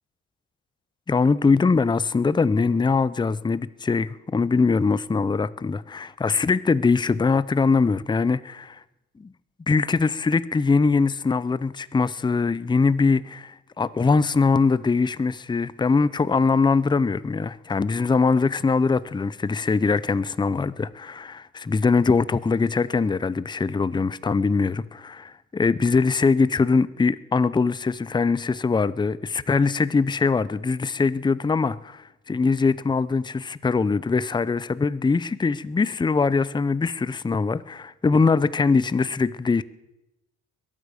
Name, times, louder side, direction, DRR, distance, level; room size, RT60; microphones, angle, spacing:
voice 1, 1.1-8.8 9.2-9.3 9.7-39.6, left 4 dB, 15° left, 0.5 m, -22 dB
22.0 x 8.9 x 6.7 m
cardioid pair, 90°, 30 cm